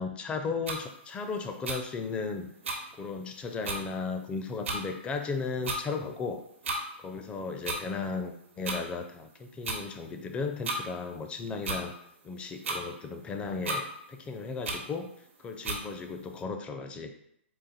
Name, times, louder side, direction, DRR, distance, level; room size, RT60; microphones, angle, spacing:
voice 1, 0.0-2.5 3.0-6.4 7.0-11.9 12.2-15.1 15.4-17.1, left 4 dB, 15° left, 6 dB, 0.4 m, -35 dB
sound 1, 0.7-0.8 1.7-1.8 2.6-2.8 3.3-3.4 3.6-3.8 4.6-4.8 5.6-5.8 6.6-6.8 7.6-7.8 8.6-8.8 9.6-9.8 10.6-10.8 11.6-11.8 12.6-12.8 13.6-13.8 14.6-14.8 15.6-15.8, right 2 dB, 80° right, 0.9 m, -32 dB
3.9 x 2.5 x 4.2 m, 0.73 s
hypercardioid pair, 130°, 7 cm